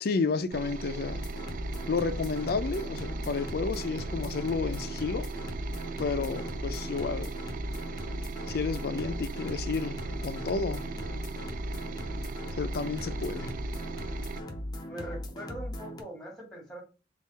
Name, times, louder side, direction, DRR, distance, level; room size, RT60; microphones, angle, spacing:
voice 1, 0.0-1.2 1.9-5.3 6.0-7.3 8.5-10.9 12.6-13.5, left 4 dB, 60° left, 0.4 m, -31 dB
sound 1, 0.5-14.4, right 4 dB, 50° right, 0.3 m, -38 dB
sound 2, 1.0-16.0, left 1 dB, 25° left, 0.7 m, -38 dB
voice 2, 6.2-6.5 14.9-16.8, right 1 dB, ahead, 1.8 m, -42 dB
3.7 x 2.4 x 4.1 m
head